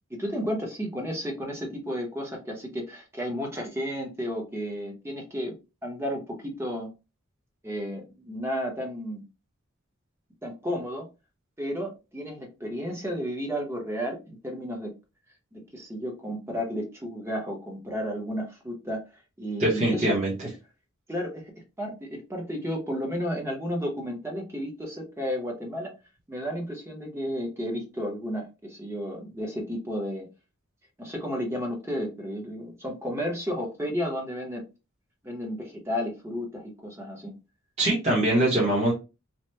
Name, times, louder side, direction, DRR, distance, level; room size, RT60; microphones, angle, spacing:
voice 1, 0.1-5.6 5.8-6.9 7.6-9.2 10.4-11.1 11.6-14.9 15.5-19.0 19.4-20.1 21.1-21.4 21.8-25.9 26.3-30.3 31.0-34.6 35.2-37.3, equal, 15° right, 1 dB, 0.8 m, -32 dB
voice 2, 19.6-20.3 37.8-38.9, right 1 dB, 30° right, -7 dB, 1.0 m, -23 dB
2.9 x 2.1 x 3.2 m, 0.28 s
head